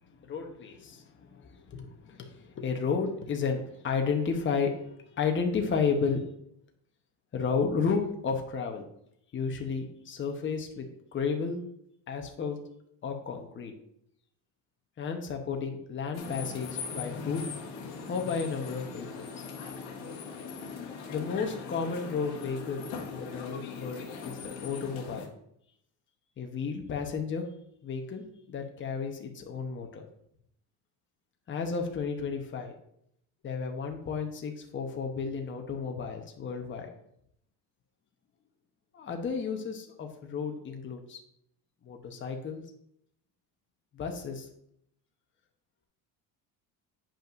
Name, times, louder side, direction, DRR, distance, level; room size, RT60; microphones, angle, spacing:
voice 1, 0.2-6.2 7.3-8.9 9.3-11.6 12.1-12.6 13.0-13.7 15.0-17.4 18.1-19.1 21.1-25.3 26.4-27.5 27.8-30.0 31.5-32.7 33.4-36.9 38.9-41.2 41.8-42.6 43.9-44.5, left 5 dB, 30° left, 3 dB, 1.0 m, -32 dB
sound 1, 16.1-25.3, left 5 dB, 80° left, 1.5 m, -40 dB
8.7 x 5.4 x 2.6 m, 0.72 s
cardioid pair, 120°, 37 cm